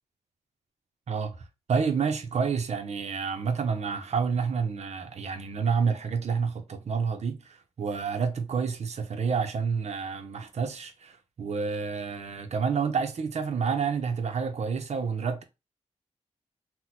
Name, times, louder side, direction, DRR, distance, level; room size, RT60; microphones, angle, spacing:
voice 1, 1.1-15.4, right 5 dB, 65° right, 0.6 m, -29 dB
2.9 x 2.1 x 4.0 m
wide cardioid pair, 95°, 13 cm